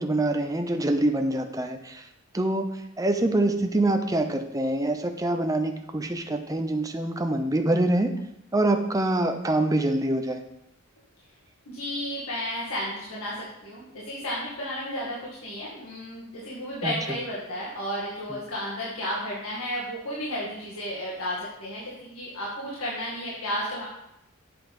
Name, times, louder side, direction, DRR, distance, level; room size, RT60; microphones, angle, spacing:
voice 1, 0.0-2.1 2.3-8.1 8.5-10.4 16.8-16.9 18.3-18.4, right 1 dB, 15° right, 5 dB, 0.7 m, -25 dB
voice 2, 11.7-23.9, equal, 75° left, -6 dB, 2.0 m, -33 dB
7.4 x 5.9 x 5.2 m, 0.83 s
head